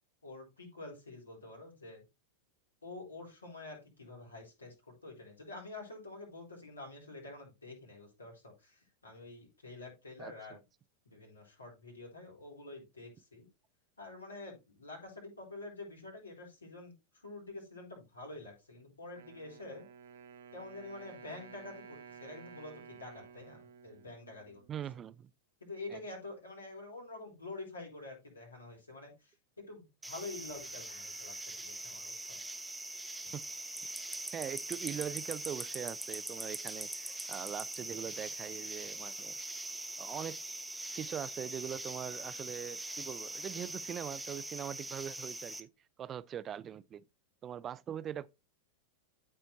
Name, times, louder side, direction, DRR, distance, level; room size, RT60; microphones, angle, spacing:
voice 1, 0.2-2.0 2.8-10.6 11.1-13.5 14.0-16.9 17.2-19.9 20.5-24.6 25.6-29.4 29.7-32.4, left 2 dB, 75° left, 3.9 m, -47 dB
voice 2, 10.2-10.6 24.7-25.3 25.9-26.0 33.3-33.4 34.3-39.4 40.0-40.3 40.9-45.7 46.0-47.0 47.4-48.3, right 9 dB, 25° right, 0.5 m, -42 dB
Wind instrument woodwind instrument, 19.1-25.1, right 7 dB, 60° right, 1.2 m, -54 dB
sound 1, 30.0-45.6, right 2 dB, 5° right, 0.9 m, -42 dB
sound 2, 30.3-32.5 32.8-32.9, left 2 dB, 40° left, 2.2 m, -65 dB
13.0 x 4.4 x 2.7 m
figure-of-eight pair, 90°, 0 cm